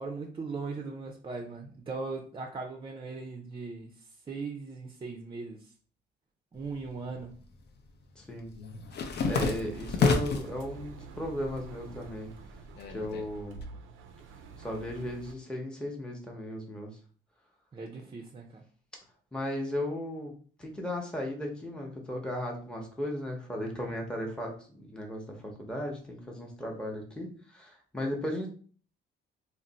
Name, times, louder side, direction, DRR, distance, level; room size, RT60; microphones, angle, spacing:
voice 1, 0.0-3.9 4.3-5.7 6.5-7.3 17.7-18.6, right 4 dB, 25° right, 2 dB, 0.4 m, -39 dB
sound 1, 6.7-7.5 7.8-10.6 11.0-11.7 12.0-13.6, left 4 dB, 55° left, 0.5 m, -30 dB
voice 2, 8.2-8.5 9.3-12.3 12.9-13.6 14.6-16.9 19.3-20.3 20.6-28.5, left 1 dB, 5° left, 0 dB, 0.7 m, -36 dB
Engine, 9.5-15.3, right 5 dB, 90° right, 0.4 m, -47 dB
2.4 x 2.0 x 3.9 m, 0.43 s
cardioid pair, 90°, 20 cm